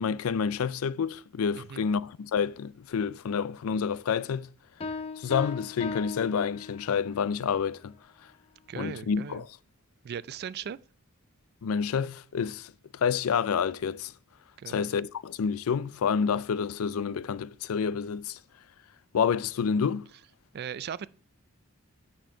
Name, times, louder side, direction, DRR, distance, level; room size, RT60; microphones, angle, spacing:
voice 1, 0.0-4.5 5.2-7.9 8.8-9.5 11.6-14.1 14.7-18.4 19.1-20.1, left 6 dB, 85° left, 0.4 m, -29 dB
voice 2, 1.6-1.9 8.7-9.4 10.0-10.8 14.6-14.9 20.5-21.1, right 8 dB, 50° right, 0.3 m, -38 dB
Piano, 4.8-7.2, left 4 dB, 30° left, 0.5 m, -37 dB
9.0 x 4.4 x 5.6 m
head